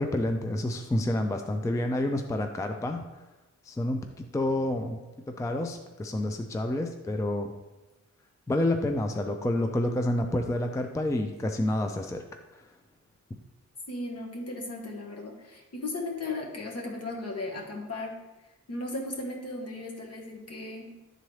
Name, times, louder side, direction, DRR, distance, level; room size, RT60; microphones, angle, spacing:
voice 1, 0.0-3.0 3.7-5.0 5.3-7.5 8.5-12.2, left 1 dB, 10° left, 5 dB, 0.3 m, -29 dB
voice 2, 13.9-18.2 18.7-21.0, left 2 dB, 55° left, 0 dB, 1.3 m, -36 dB
10.5 x 3.8 x 3.1 m, 1.1 s
wide cardioid pair, 135°, 30 cm